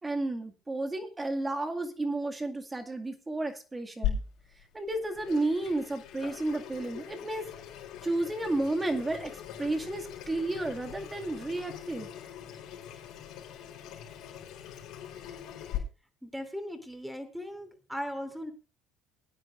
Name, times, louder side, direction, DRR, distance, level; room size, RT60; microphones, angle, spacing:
voice 1, 0.0-4.2 4.7-7.5 8.0-12.1, right 2 dB, 20° right, 5 dB, 2.1 m, -32 dB
Water tap faucet / Sink (filling or washing), 4.0-15.8, left 9 dB, 65° left, 4.5 m, -40 dB
voice 2, 16.2-18.5, equal, 5° right, 6 dB, 3.0 m, -38 dB
21.5 x 9.6 x 2.6 m, 0.33 s
hypercardioid pair, 70°, 0 cm